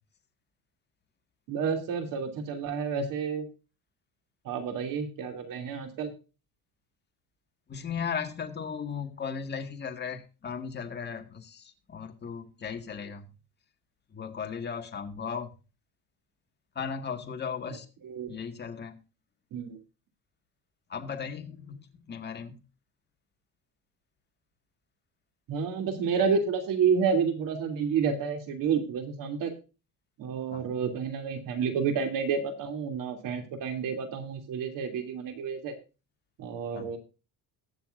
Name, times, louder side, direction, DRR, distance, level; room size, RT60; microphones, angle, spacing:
voice 1, 1.5-3.5 4.4-6.1 18.0-18.3 19.5-19.8 25.5-29.6 30.2-35.7 36.4-37.0, right 6 dB, 60° right, 6 dB, 3.0 m, -30 dB
voice 2, 7.7-13.3 14.1-15.5 16.8-17.9 18.3-19.0 20.9-22.5 30.5-30.6 36.7-36.9, left 6 dB, 30° left, 5 dB, 1.9 m, -36 dB
21.0 x 7.1 x 2.6 m, 0.32 s
cardioid pair, 140°, 36 cm